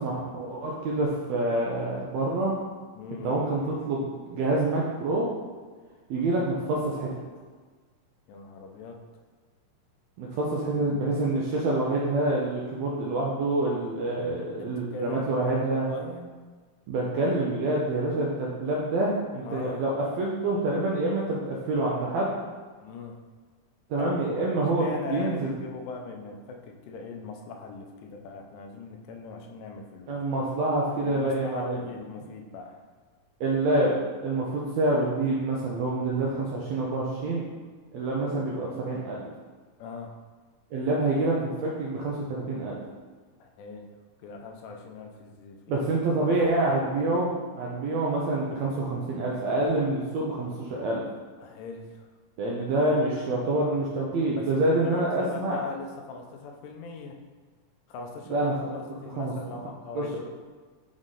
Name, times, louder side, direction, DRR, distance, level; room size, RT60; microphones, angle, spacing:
voice 1, 0.0-2.5 3.2-5.3 6.1-7.1 10.2-15.8 16.9-22.3 23.9-25.5 30.1-31.8 33.4-33.9 34.2-37.4 37.9-39.2 40.7-42.8 45.7-51.0 52.4-55.6 58.3-58.8 59.1-59.3 59.9-60.0, right 2 dB, 75° right, -4 dB, 1.6 m, -27 dB
voice 2, 3.0-3.3 8.3-9.0 14.6-16.3 19.4-19.9 22.8-23.2 24.0-24.3 24.8-30.1 31.0-32.8 39.8-40.2 43.4-43.9 44.2-45.9 46.4-46.5 51.4-52.1 54.2-57.2 57.9-60.3, left 4 dB, 85° left, 2 dB, 2.3 m, -40 dB
6.2 x 4.0 x 3.8 m, 1.4 s
omnidirectional pair, 3.9 m